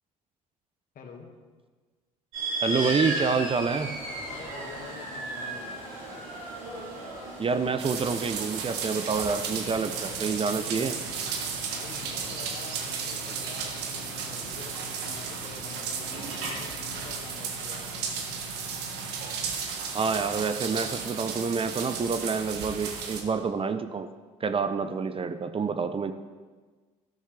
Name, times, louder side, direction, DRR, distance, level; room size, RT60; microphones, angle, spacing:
voice 1, 0.9-1.3 4.3-5.7 11.7-18.1, left 5 dB, 50° left, 3 dB, 2.0 m, -47 dB
sound 1, 2.3-17.3, right 1 dB, 85° right, 4.2 m, -38 dB
voice 2, 2.6-3.9 7.4-10.9 19.9-24.1 24.4-26.1, right 5 dB, 30° right, 10 dB, 0.7 m, -28 dB
sound 2, 7.8-23.2, right 6 dB, 70° right, 1.6 m, -34 dB
sound 3, 9.1-19.4, left 13 dB, 50° right, 3.1 m, -49 dB
13.0 x 12.0 x 3.4 m, 1.4 s
hypercardioid pair, 65°, 18 cm